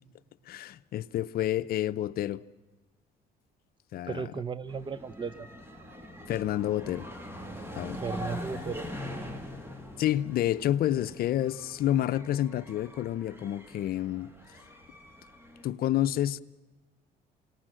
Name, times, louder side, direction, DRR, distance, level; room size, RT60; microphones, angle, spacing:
voice 1, 0.5-2.4 3.9-4.3 6.3-7.1 7.7-8.0 10.0-14.3 15.6-16.4, left 12 dB, 60° left, 0.7 m, -29 dB
voice 2, 4.1-5.5 8.0-9.3, right 5 dB, 30° right, 0.9 m, -36 dB
sound 1, 4.7-15.7, left 1 dB, 15° right, 2.9 m, -43 dB
28.0 x 18.0 x 7.6 m
cardioid pair, 110°, 17 cm